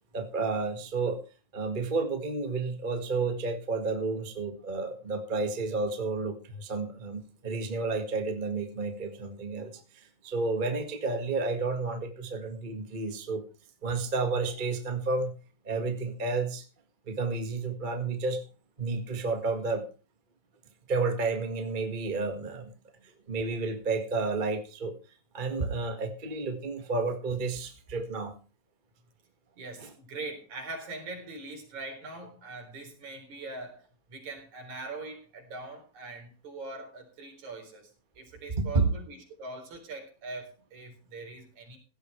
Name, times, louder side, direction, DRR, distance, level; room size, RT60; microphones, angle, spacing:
voice 1, 0.1-1.2 1.5-13.4 13.8-15.3 15.6-16.6 17.1-18.4 18.8-19.9 20.9-22.7 23.0-24.9 25.3-28.3 29.8-29.9 38.7-38.9, right 3 dB, 25° right, 5 dB, 1.2 m, -31 dB
voice 2, 29.6-37.9 38.2-41.8, right 3 dB, 60° right, 3 dB, 5.3 m, -42 dB
16.5 x 12.5 x 3.3 m, 0.34 s
omnidirectional pair, 3.8 m